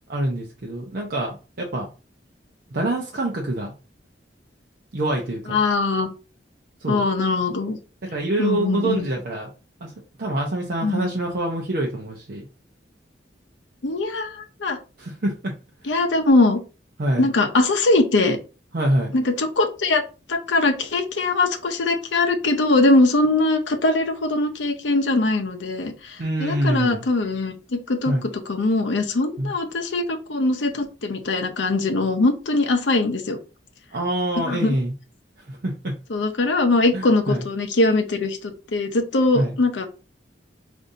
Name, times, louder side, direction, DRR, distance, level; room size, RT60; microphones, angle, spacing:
voice 1, 0.1-1.9 2.7-3.7 4.9-5.6 6.8-7.0 8.0-9.5 9.8-9.9 10.2-12.5 15.0-15.5 17.0-17.3 18.7-19.1 26.2-27.0 28.1-28.2 29.4-29.5 33.9-34.9 35.5-35.9 36.9-37.4 39.3-39.5, right 1 dB, 55° right, -1 dB, 0.6 m, -25 dB
voice 2, 5.5-6.1 6.9-7.8 8.4-9.1 10.8-11.1 13.8-14.8 15.9-16.6 17.2-18.4 19.1-20.0 20.3-33.4 34.5-34.8 36.1-39.9, left 2 dB, 80° left, 5 dB, 0.7 m, -21 dB
5.1 x 2.6 x 2.6 m, 0.34 s
head